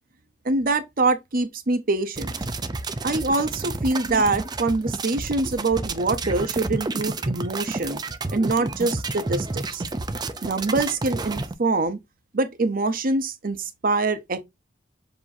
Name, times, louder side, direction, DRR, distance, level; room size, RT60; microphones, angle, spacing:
voice 1, 0.4-2.3 3.0-8.0 8.3-9.8 10.4-12.0 12.3-14.4, right 3 dB, 50° right, 0.8 m, -24 dB
sound 1, 2.2-11.5, right 3 dB, 20° right, 0.4 m, -30 dB
7.1 x 2.9 x 2.6 m
head